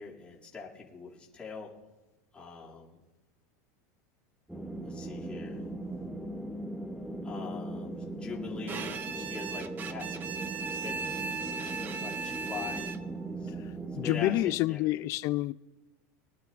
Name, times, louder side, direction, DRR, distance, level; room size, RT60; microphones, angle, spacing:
voice 1, 0.0-1.7 2.3-3.0 4.8-5.6 7.2-10.2 10.7-11.2 11.6-13.1 13.4-13.5 14.0-14.3 14.6-14.8, left 5 dB, 15° left, 2.5 m, -43 dB
sound 1, 4.5-14.6, right 2 dB, ahead, 0.9 m, -39 dB
Bowed string instrument, 8.7-13.3, right 5 dB, 25° right, 0.5 m, -37 dB
voice 2, 14.0-15.5, left 16 dB, 40° left, 0.4 m, -28 dB
22.5 x 11.5 x 2.5 m
supercardioid pair, 155°, 8 cm